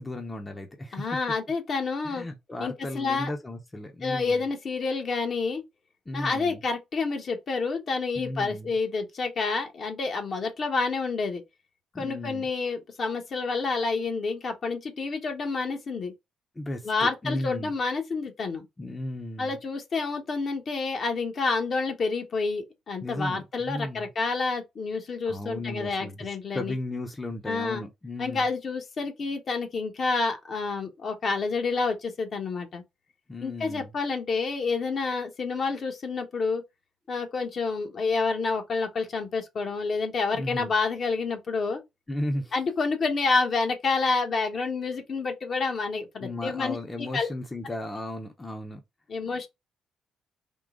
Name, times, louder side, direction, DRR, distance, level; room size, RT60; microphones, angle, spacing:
voice 1, 0.0-1.1 2.0-4.4 6.1-6.6 8.1-8.8 11.9-12.5 16.6-17.7 18.8-19.6 23.0-24.1 25.3-28.5 33.3-33.9 40.3-40.7 42.1-42.5 46.2-48.8, left 1 dB, 20° left, 0.8 m, -35 dB
voice 2, 0.9-2.2 2.6-3.3 4.0-5.6 6.1-11.4 12.0-16.1 16.8-18.6 19.4-26.7 27.5-27.8 28.2-32.8 33.4-36.6 37.1-41.8 42.5-46.8 47.1-47.3 49.1-49.5, left 4 dB, 50° left, 1.1 m, -28 dB
3.7 x 2.2 x 3.6 m
cardioid pair, 90°, 0 cm